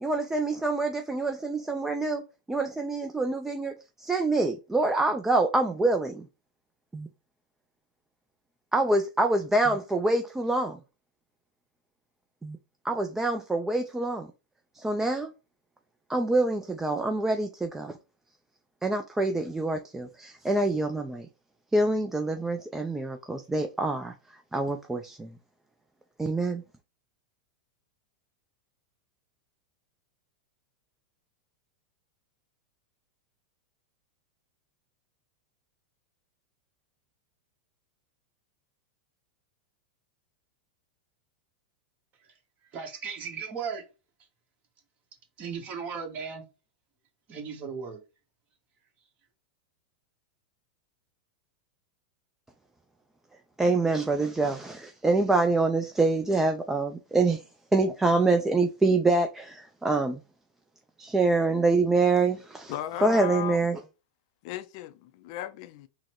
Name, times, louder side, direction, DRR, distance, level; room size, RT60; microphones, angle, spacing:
voice 1, 0.0-2.2 2.5-3.7 4.0-6.3 6.9-7.1 8.7-10.8 12.4-12.6 12.8-14.3 14.8-15.3 16.1-17.9 18.8-21.3 21.7-24.1 24.5-25.3 26.2-26.6 53.6-57.4 57.7-60.2 61.0-62.7 63.0-63.8, right 2 dB, 10° right, 0.4 m, -26 dB
voice 2, 42.7-43.8 45.4-46.4 47.3-48.0, right 6 dB, 35° right, 1.3 m, -36 dB
voice 3, 62.7-63.7 64.4-65.9, left 12 dB, 60° left, 0.4 m, -36 dB
3.9 x 2.2 x 4.3 m
hypercardioid pair, 115°, 4 cm